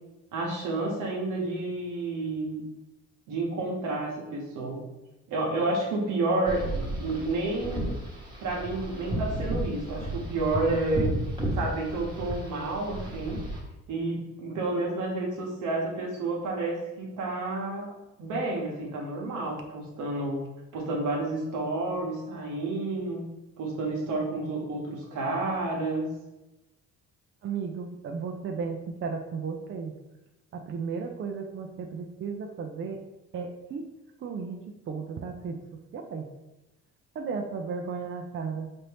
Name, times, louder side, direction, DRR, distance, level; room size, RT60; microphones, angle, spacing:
voice 1, 0.3-2.6 3.3-4.8 5.3-7.9 8.4-11.1 11.5-13.4 13.9-17.9 18.2-20.4 20.7-23.2 23.6-26.1, right 2 dB, 85° right, -2 dB, 1.0 m, -30 dB
sound 1, 6.5-13.6, right 1 dB, 15° right, 1.1 m, -33 dB
voice 2, 27.4-29.9 30.5-33.0 33.3-33.8 34.2-34.6 34.9-35.6 35.9-36.3 37.1-38.7, right 5 dB, 40° right, 3 dB, 0.5 m, -34 dB
4.2 x 2.6 x 3.4 m, 1.0 s
cardioid pair, 90°, 30 cm